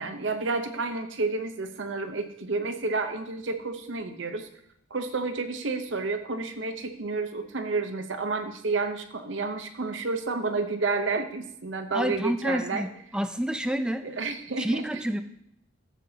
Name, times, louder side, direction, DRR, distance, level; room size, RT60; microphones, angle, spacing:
voice 1, 0.0-4.5 4.9-12.8 14.0-14.8, right 3 dB, 70° right, 7 dB, 0.8 m, -30 dB
voice 2, 11.9-12.9 13.1-14.0 14.6-15.2, right 1 dB, 5° right, 8 dB, 0.4 m, -28 dB
14.0 x 7.3 x 2.8 m, 0.75 s
head